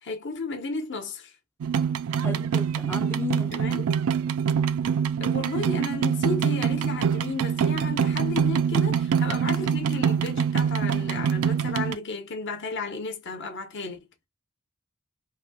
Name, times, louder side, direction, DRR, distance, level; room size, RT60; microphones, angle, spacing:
voice 1, 0.0-1.3 3.5-3.8 5.2-14.0, left 3 dB, 55° left, 0.9 m, -33 dB
sound 1, 1.6-12.0, right 7 dB, 80° right, 0.4 m, -25 dB
voice 2, 2.2-3.5, left 2 dB, 10° left, 0.3 m, -34 dB
3.2 x 2.7 x 2.3 m
head